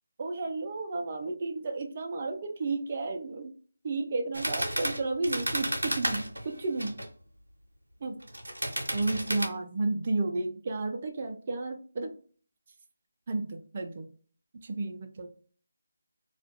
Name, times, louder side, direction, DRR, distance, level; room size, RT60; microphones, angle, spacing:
voice 1, 0.2-3.5 3.8-7.0 8.0-8.2 8.9-12.1 13.3-14.1 14.6-15.3, right 3 dB, 35° right, 4 dB, 0.4 m, -32 dB
sound 1, 4.3-7.1 8.2-9.5, right 1 dB, 90° right, 0.6 m, -32 dB
2.4 x 2.2 x 2.5 m, 0.43 s
figure-of-eight pair, 160°, 0 cm